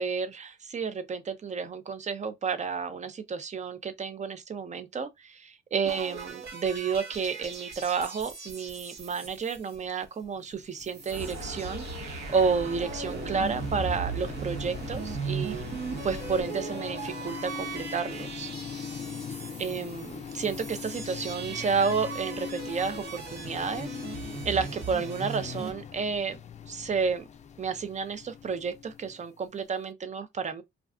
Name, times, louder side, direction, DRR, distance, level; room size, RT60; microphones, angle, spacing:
voice 1, 0.0-15.7 16.0-18.5 19.6-26.4 26.7-27.2 27.6-30.6, right 5 dB, 35° right, 0.6 m, -31 dB
sound 1, 5.8-10.2 10.5-10.6 10.8-25.7, right 5 dB, 55° right, 1.0 m, -39 dB
sound 2, 10.5-29.5, left 7 dB, 35° left, 0.4 m, -42 dB
sound 3, 11.1-16.4, right 1 dB, 80° right, 1.2 m, -40 dB
2.4 x 2.3 x 3.6 m
cardioid pair, 90°, 20 cm